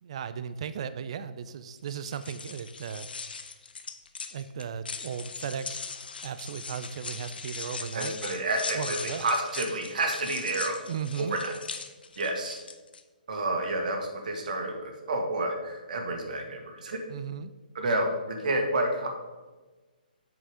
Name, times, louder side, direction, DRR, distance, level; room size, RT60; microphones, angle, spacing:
voice 1, 0.0-3.1 4.3-5.9 6.2-8.2 8.7-9.3 10.9-11.4 17.1-17.5, right 7 dB, 40° right, 12 dB, 0.3 m, -36 dB
sound 1, 1.9-13.0, left 5 dB, 80° left, 0.8 m, -40 dB
voice 2, 7.9-10.8 11.2-11.5 12.2-12.6 13.3-17.0 17.7-19.1, right 2 dB, 55° right, 3 dB, 1.7 m, -29 dB
7.7 x 5.7 x 4.8 m, 1.3 s
hypercardioid pair, 170°, 5 cm